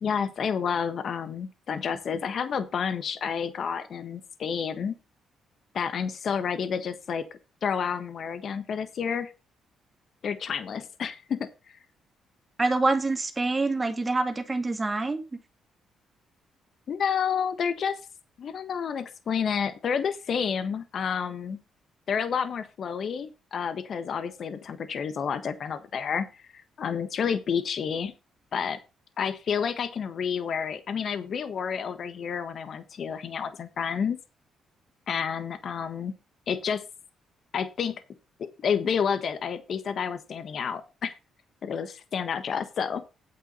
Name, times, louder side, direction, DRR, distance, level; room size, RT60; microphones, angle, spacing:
voice 1, 0.0-4.9 5.7-7.2 7.6-9.3 10.2-11.8 16.9-18.0 18.4-21.6 22.1-28.1 28.5-28.8 29.2-34.2 35.1-36.1 36.5-36.8 37.5-38.0 38.4-41.1 41.6-43.0, left 7 dB, 55° left, 11 dB, 1.5 m, -30 dB
voice 2, 12.6-15.2, right 3 dB, 25° right, 6 dB, 2.4 m, -26 dB
9.3 x 8.5 x 4.1 m, 0.29 s
cardioid pair, 90°, 0 cm